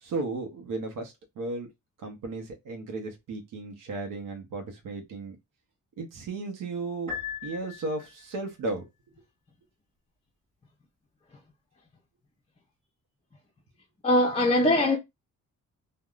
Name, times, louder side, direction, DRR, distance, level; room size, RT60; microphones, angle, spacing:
voice 1, 0.0-1.7 2.0-5.4 6.0-7.1 7.4-8.8, right 3 dB, 85° right, 0.8 m, -35 dB
Piano, 7.1-8.3, left 7 dB, 20° right, 1.5 m, -38 dB
voice 2, 14.0-15.0, left 1 dB, 20° left, 0.4 m, -21 dB
3.4 x 2.1 x 2.3 m
wide cardioid pair, 165°, 32 cm